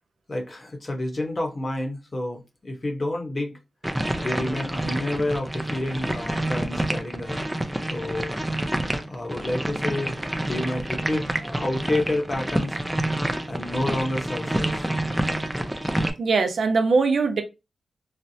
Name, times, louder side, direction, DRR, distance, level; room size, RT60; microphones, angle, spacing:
voice 1, 0.3-3.6 4.1-7.4 7.9-8.3 9.1-12.8 13.5-14.9, left 1 dB, 35° left, 0.9 m, -29 dB
sound 1, 3.8-16.1, right 1 dB, 10° right, 0.5 m, -28 dB
voice 2, 16.2-17.4, right 4 dB, 65° right, 0.6 m, -21 dB
4.1 x 2.0 x 2.7 m
wide cardioid pair, 95°, 0 cm